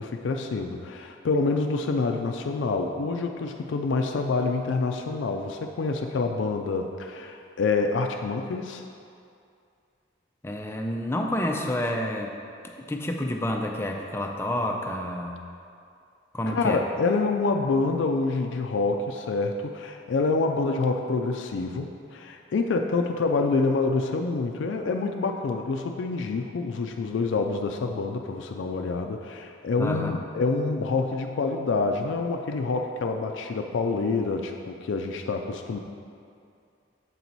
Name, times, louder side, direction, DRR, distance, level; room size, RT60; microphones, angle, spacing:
voice 1, 0.0-8.8 16.5-35.8, left 3 dB, 75° left, 4 dB, 0.4 m, -27 dB
voice 2, 10.4-12.4 12.9-15.4 16.3-16.8 29.8-30.2, left 1 dB, 15° left, 2 dB, 0.4 m, -29 dB
7.4 x 4.5 x 4.0 m, 2.4 s
head